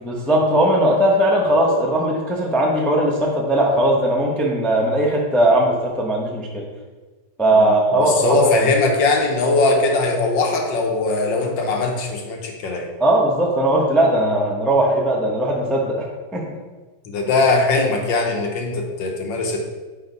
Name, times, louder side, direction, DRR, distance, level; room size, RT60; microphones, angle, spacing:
voice 1, 0.0-6.7 7.4-8.5 13.0-16.1 16.3-16.6, right 1 dB, ahead, -2 dB, 0.3 m, -18 dB
voice 2, 7.5-12.9 17.1-19.6, left 3 dB, 80° left, 2 dB, 1.6 m, -20 dB
4.6 x 4.4 x 5.3 m, 1.3 s
omnidirectional pair, 2.0 m